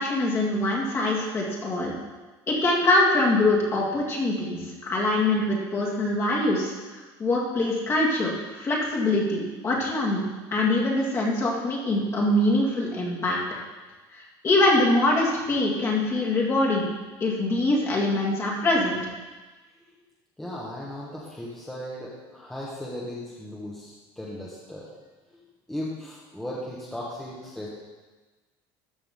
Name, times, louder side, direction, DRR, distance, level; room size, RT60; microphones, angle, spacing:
voice 1, 0.0-1.9 2.5-10.2 10.5-13.4 14.4-16.9 17.2-19.0, left 2 dB, 25° left, -3 dB, 2.0 m, -24 dB
voice 2, 20.4-24.9 25.7-27.7, left 1 dB, 5° left, -7 dB, 1.4 m, -36 dB
13.5 x 6.1 x 3.7 m, 1.2 s
cardioid pair, 155°, 10 cm